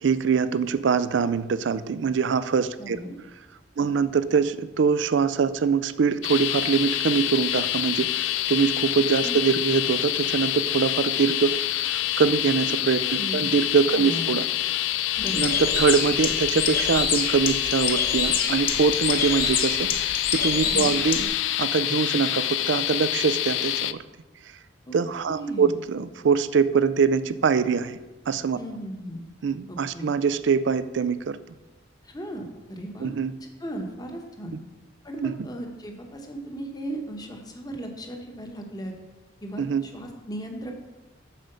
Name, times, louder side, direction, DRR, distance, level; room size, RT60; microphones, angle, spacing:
voice 1, 0.0-3.0 3.8-14.5 15.4-21.3 21.6-24.0 24.9-28.0 28.3-28.6 29.4-31.4 33.0-33.3 35.2-35.3 39.6-39.9, right 5 dB, 65° right, 14 dB, 0.4 m, -23 dB
voice 2, 2.8-3.2 3.8-3.9 9.2-9.4 13.1-13.5 13.9-14.4 15.2-15.6 20.6-21.0 24.9-25.0 25.3-25.8 28.5-29.2 29.7-30.1 32.0-33.1 33.6-34.6 35.0-38.9 39.4-40.7, right 1 dB, 20° left, 3 dB, 1.1 m, -36 dB
sound 1, 6.2-23.9, left 13 dB, 65° left, 0.3 m, -27 dB
Bird, 15.2-21.3, left 6 dB, 50° left, 1.0 m, -28 dB
7.7 x 5.0 x 6.7 m, 1.1 s
head